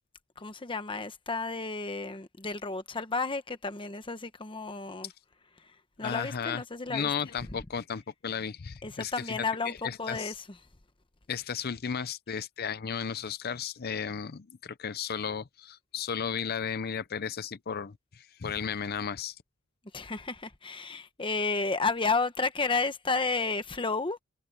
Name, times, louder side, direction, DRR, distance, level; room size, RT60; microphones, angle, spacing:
voice 1, 0.4-5.1 6.0-7.1 8.8-10.3 19.9-24.2, left 4 dB, 25° left, 1.1 m, -32 dB
voice 2, 6.0-6.6 6.9-10.4 11.3-19.4, left 7 dB, 50° left, 0.6 m, -34 dB
head